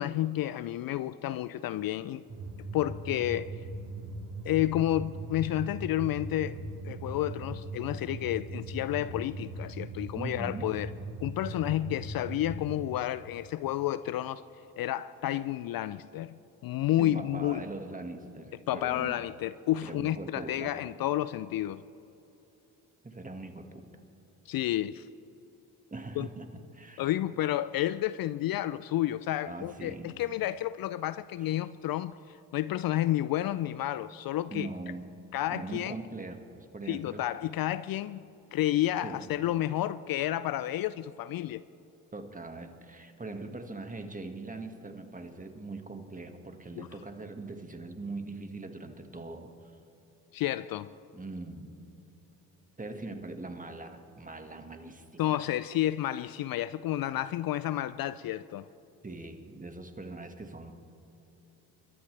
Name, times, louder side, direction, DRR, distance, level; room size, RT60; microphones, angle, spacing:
voice 1, 0.0-2.2 2.7-3.6 4.4-6.6 6.8-10.9 11.2-14.4 14.8-16.4 16.6-17.6 18.7-21.8 24.5-25.1 26.2-26.3 27.0-32.1 32.5-34.7 35.3-35.9 36.9-38.2 38.5-41.6 46.8-46.9 50.3-50.9 55.2-58.7, left 13 dB, 55° left, 0.5 m, -30 dB
sound 1, 2.3-12.7, right 2 dB, 55° right, 4.6 m, -40 dB
voice 2, 10.2-10.7 17.0-19.2 19.8-20.8 23.0-23.8 25.9-27.0 29.5-30.2 31.4-31.5 34.5-35.1 35.5-37.2 39.0-39.3 42.1-49.7 51.1-51.8 52.8-55.4 59.0-60.7, right 3 dB, 20° right, 1.8 m, -41 dB
27.5 x 13.0 x 3.4 m
supercardioid pair, 60°, 44 cm